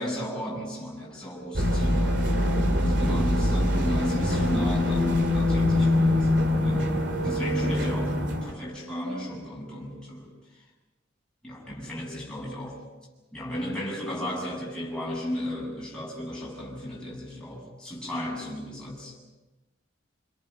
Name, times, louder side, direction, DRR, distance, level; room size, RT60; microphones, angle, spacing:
voice 1, 0.0-2.2 2.7-6.9 7.2-10.3 11.4-12.8 13.3-19.2, left 1 dB, 5° left, -5 dB, 7.7 m, -34 dB
sound 1, 1.5-8.5, left 1 dB, 65° right, 2.8 m, -24 dB
28.0 x 26.0 x 5.7 m, 1.1 s
head